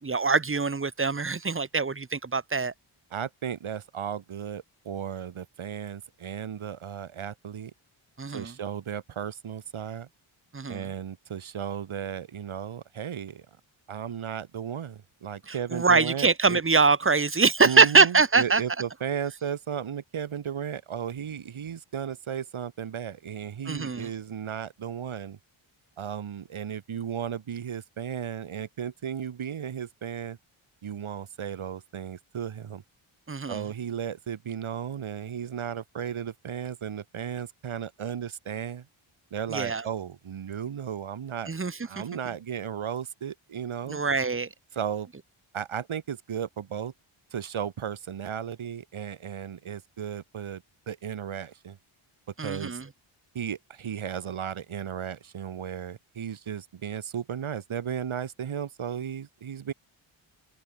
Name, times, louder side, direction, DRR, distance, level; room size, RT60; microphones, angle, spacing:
voice 1, 0.0-2.7 8.2-8.5 10.5-10.9 15.5-18.6 23.7-24.1 33.3-33.6 39.5-39.8 41.5-41.8 43.9-44.5 52.4-52.8, right 4 dB, 25° right, 2.6 m, -23 dB
voice 2, 3.1-7.7 8.3-10.1 10.7-13.5 13.9-16.6 17.6-25.4 26.0-30.4 30.8-32.8 33.5-38.9 39.3-41.5 41.8-44.0 44.7-45.1 45.5-46.9 47.3-51.8 52.4-52.8 53.3-59.7, right 8 dB, 70° right, 6.0 m, -35 dB
open air
wide cardioid pair, 170°, 50 cm